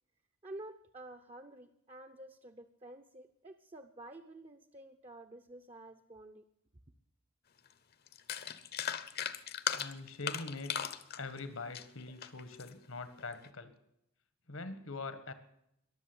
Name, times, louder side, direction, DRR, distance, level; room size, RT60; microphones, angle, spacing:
voice 1, 0.4-6.4, right 1 dB, 30° right, 8 dB, 0.7 m, -50 dB
sound 1, 7.7-7.8 8.1-12.7 13.2-13.5, left 9 dB, 50° left, 0.9 m, -37 dB
voice 2, 9.7-10.9 11.2-13.7 14.5-15.3, left 3 dB, 75° left, 11 dB, 1.6 m, -43 dB
22.0 x 7.5 x 8.0 m, 0.79 s
head